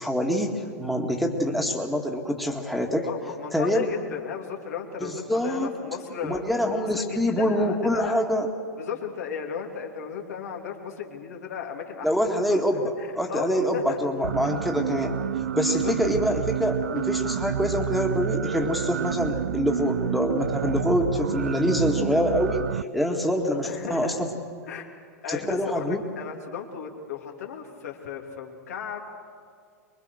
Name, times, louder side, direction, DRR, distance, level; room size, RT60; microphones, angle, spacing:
voice 1, 0.0-3.1 3.5-3.9 5.0-5.7 6.2-8.5 12.0-12.8 13.1-15.2 15.6-24.3 25.3-26.0, equal, ahead, 1 dB, 2.0 m, -25 dB
voice 2, 3.0-6.4 6.7-8.2 8.8-12.1 12.5-12.6 13.0-14.0 15.5-15.9 21.5-21.6 23.6-24.2 24.7-24.9 25.2-29.0, left 7 dB, 70° left, 1 dB, 2.8 m, -35 dB
sound 1, 14.2-22.8, right 9 dB, 75° right, 0.5 m, -29 dB
24.5 x 22.0 x 6.6 m, 2.2 s
figure-of-eight pair, 95°, 9 cm